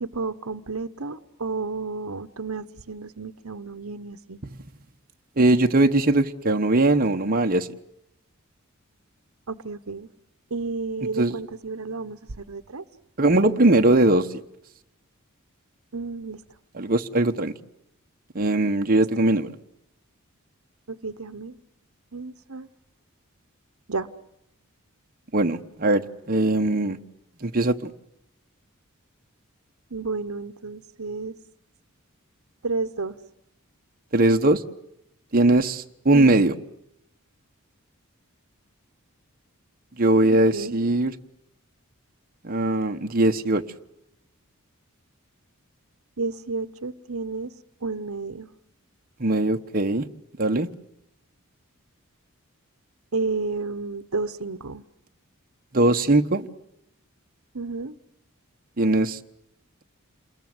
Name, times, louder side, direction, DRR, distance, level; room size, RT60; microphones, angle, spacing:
voice 1, 0.0-4.4 9.5-10.1 10.5-12.8 15.9-16.4 20.9-21.6 22.1-22.7 23.9-24.1 29.9-31.3 32.6-33.2 36.1-36.4 40.5-40.8 46.2-47.5 47.8-48.5 53.1-54.8 57.5-58.0, right 3 dB, 75° right, 13 dB, 1.0 m, -31 dB
voice 2, 5.4-7.7 11.2-11.3 13.2-14.3 16.7-17.5 18.3-19.5 25.3-27.0 27.4-27.9 34.1-34.6 35.3-36.5 40.0-41.1 42.4-43.6 49.2-50.1 50.4-50.7 55.7-56.5 58.8-59.2, right 2 dB, 40° right, 5 dB, 1.1 m, -20 dB
28.0 x 22.0 x 7.8 m, 0.81 s
head